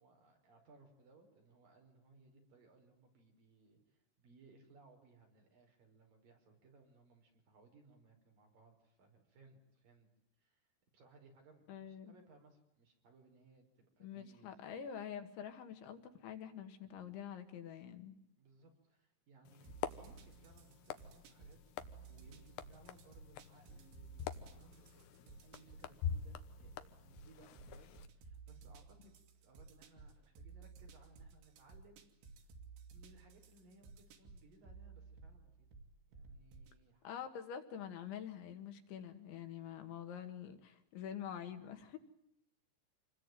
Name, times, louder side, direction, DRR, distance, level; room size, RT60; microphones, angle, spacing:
voice 1, 0.0-10.1 10.4-10.7 10.9-14.7 18.4-19.7 20.0-21.6 22.1-32.0 32.9-35.7 36.1-37.1, right 3 dB, 50° right, 3 dB, 6.5 m, -65 dB
voice 2, 11.7-12.1 14.0-18.2 37.0-42.0, left 8 dB, 90° left, 7 dB, 4.5 m, -46 dB
sound 1, 19.5-28.1, left 8 dB, 75° left, 3.1 m, -46 dB
sound 2, 19.6-36.8, right 4 dB, 85° right, 4.7 m, -56 dB
27.5 x 21.0 x 9.3 m, 0.77 s
omnidirectional pair, 5.2 m